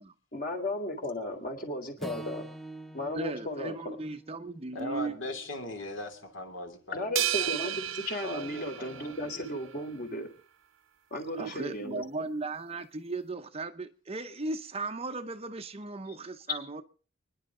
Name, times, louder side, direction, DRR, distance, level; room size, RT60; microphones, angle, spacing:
voice 1, 0.3-2.5 2.9-4.0 6.9-10.3 11.1-12.0 16.5-16.6, left 1 dB, 45° left, 3.6 m, -35 dB
Acoustic guitar / Strum, 2.0-6.3, right 1 dB, ahead, 1.0 m, -46 dB
voice 2, 3.1-5.1 11.1-16.8, right 3 dB, 30° right, 0.8 m, -37 dB
voice 3, 4.7-7.5 8.2-9.5, left 1 dB, 60° left, 2.8 m, -39 dB
sound 1, 7.2-9.6, right 11 dB, 70° right, 1.0 m, -33 dB
29.5 x 10.5 x 3.8 m
head